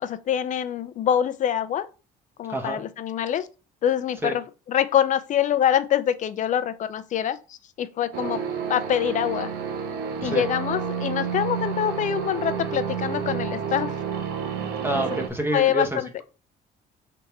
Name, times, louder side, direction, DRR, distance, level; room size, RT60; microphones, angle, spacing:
voice 1, 0.0-1.9 2.4-3.5 3.8-7.4 7.8-8.4 8.7-9.5 10.2-13.9 14.9-15.0 15.5-16.1, left 10 dB, 45° left, 0.4 m, -25 dB
voice 2, 2.5-2.8 4.2-4.3 8.3-8.4 10.2-10.5 14.8-16.0, right 1 dB, 15° right, 0.9 m, -27 dB
sound 1, 8.1-15.3, right 7 dB, 80° right, 0.8 m, -30 dB
3.5 x 2.9 x 4.5 m
cardioid pair, 110°, 17 cm